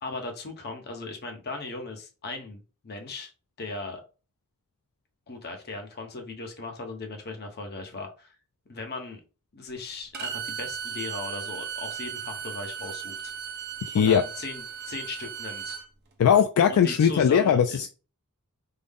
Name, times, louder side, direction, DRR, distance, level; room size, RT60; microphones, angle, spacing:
voice 1, 0.0-3.3 3.6-4.0 5.3-8.4 8.7-9.2 9.5-13.3 13.9-15.8 16.7-17.8, left 3 dB, 45° left, 4 dB, 0.9 m, -38 dB
Bowed string instrument, 10.1-15.8, right 8 dB, 50° right, 0.8 m, -36 dB
voice 2, 13.9-14.2 16.2-17.9, left 8 dB, 70° left, 8 dB, 0.3 m, -20 dB
3.7 x 2.1 x 3.5 m, 0.33 s
head